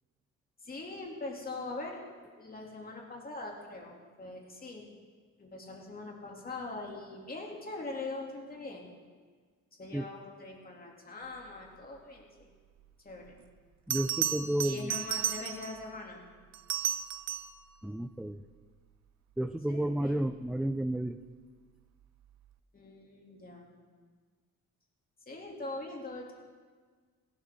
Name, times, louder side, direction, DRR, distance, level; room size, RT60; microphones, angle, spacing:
voice 1, 0.6-2.0 2.3-4.9 5.4-8.9 9.8-12.5 13.0-13.4 14.6-16.2 19.7-20.2 22.7-23.7 25.3-26.3, left 2 dB, 30° left, -1 dB, 3.0 m, -42 dB
Bell, 13.3-13.4 13.9-15.8 16.5-17.6 20.3-20.5, right 10 dB, 65° right, 0.7 m, -33 dB
voice 2, 13.9-14.9 17.8-18.4 19.4-21.2, right 1 dB, ahead, 9 dB, 0.4 m, -32 dB
16.5 x 12.0 x 3.9 m, 1.5 s
cardioid pair, 90°, 30 cm